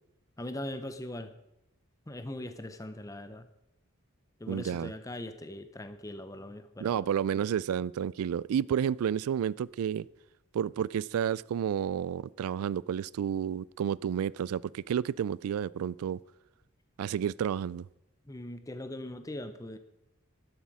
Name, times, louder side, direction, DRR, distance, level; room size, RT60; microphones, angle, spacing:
voice 1, 0.4-1.4 2.1-3.5 4.4-7.0 18.3-19.8, left 1 dB, 15° left, 0.7 m, -40 dB
voice 2, 4.5-4.9 6.8-10.1 10.5-16.2 17.0-17.9, right 8 dB, 80° right, 0.3 m, -31 dB
11.5 x 11.5 x 4.8 m
head